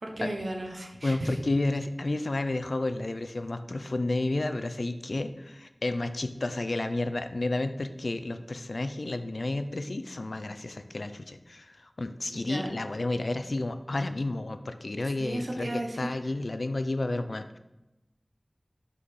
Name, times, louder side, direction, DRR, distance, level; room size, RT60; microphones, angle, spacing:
voice 1, 0.0-1.4 12.3-12.8 15.0-16.1, right 1 dB, 75° right, 2 dB, 0.9 m, -35 dB
voice 2, 1.0-17.6, left 2 dB, 75° left, 10 dB, 0.4 m, -31 dB
5.5 x 4.0 x 4.9 m, 0.96 s
wide cardioid pair, 50°, 0 cm